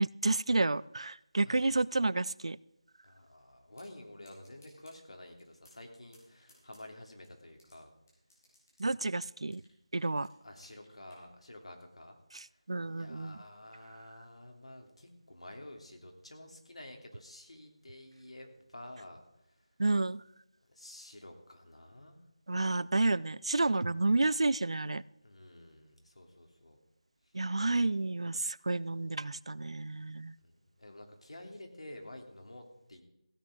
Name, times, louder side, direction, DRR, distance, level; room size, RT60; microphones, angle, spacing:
voice 1, 0.0-2.6 8.8-9.6 9.9-10.3 12.3-13.4 19.8-20.2 22.5-25.0 27.3-30.3, right 2 dB, 65° right, 21 dB, 0.4 m, -30 dB
voice 2, 1.4-1.7 3.0-7.9 10.4-12.2 12.4-19.7 20.7-22.2 25.2-26.8 27.2-27.3 30.4-33.0, left 1 dB, 75° left, 3 dB, 2.9 m, -51 dB
sound 1, 3.7-3.9 4.2-5.0 5.4-5.9 6.1-7.7 8.1-9.7 10.0-11.2, left 1 dB, 30° left, 4.5 m, -63 dB
16.0 x 8.6 x 5.1 m, 0.81 s
figure-of-eight pair, 175°, 3 cm